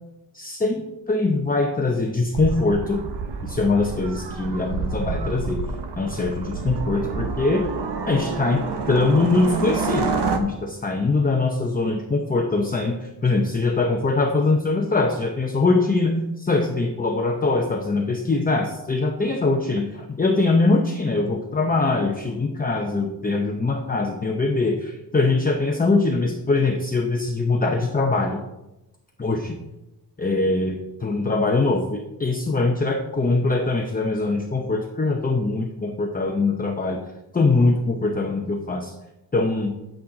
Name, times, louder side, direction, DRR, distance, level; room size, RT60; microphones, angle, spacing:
voice 1, 0.3-3.0 3.4-5.6 6.0-7.7 8.1-10.1 10.4-28.4 29.2-29.5 30.2-37.0 37.3-38.9 39.3-39.7, left 3 dB, 20° left, 1 dB, 0.7 m, -22 dB
sound 1, 2.3-10.4, right 5 dB, 70° right, 1.1 m, -28 dB
10.0 x 8.5 x 3.8 m, 0.94 s
wide cardioid pair, 160°, 42 cm